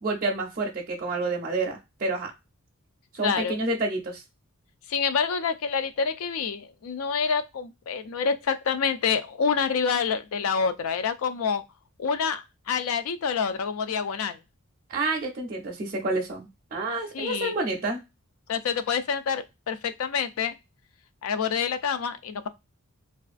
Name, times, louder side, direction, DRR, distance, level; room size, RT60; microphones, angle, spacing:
voice 1, 0.0-2.3 3.1-4.2 14.9-18.0, right 2 dB, 40° right, 0.5 m, -29 dB
voice 2, 3.2-3.6 4.9-11.6 12.0-14.4 17.1-17.5 18.5-20.6 21.2-22.5, left 6 dB, 65° left, 0.4 m, -27 dB
2.4 x 2.4 x 2.4 m
head